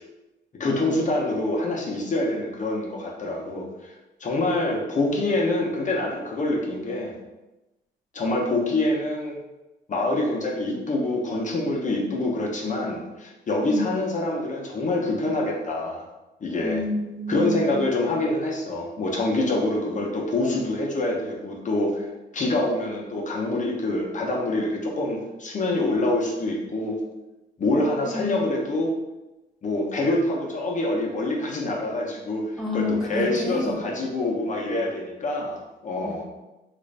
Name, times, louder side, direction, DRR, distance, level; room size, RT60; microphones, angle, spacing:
voice 1, 0.6-3.9 4.2-7.1 8.1-9.3 9.9-16.0 16.4-16.8 17.3-22.1 22.3-27.0 27.6-28.9 29.6-36.2, left 2 dB, 40° left, -1 dB, 0.8 m, -26 dB
voice 2, 16.5-17.9 28.1-28.3 32.6-33.8 36.0-36.2, left 2 dB, ahead, -3 dB, 0.9 m, -29 dB
3.2 x 2.5 x 3.2 m, 1.0 s
cardioid pair, 90°, 20 cm